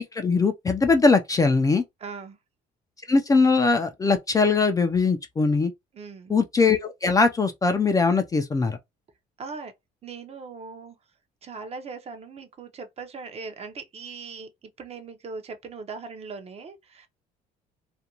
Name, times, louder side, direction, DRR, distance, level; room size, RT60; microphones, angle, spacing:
voice 1, 0.0-1.8 3.1-5.7 6.3-8.8, left 4 dB, 20° left, 0.4 m, -21 dB
voice 2, 2.0-2.4 5.9-6.4 9.4-9.7 10.0-11.0 11.4-14.5 14.8-17.1, right 4 dB, 35° right, 0.6 m, -39 dB
2.5 x 2.2 x 2.9 m
cardioid pair, 110°, 17 cm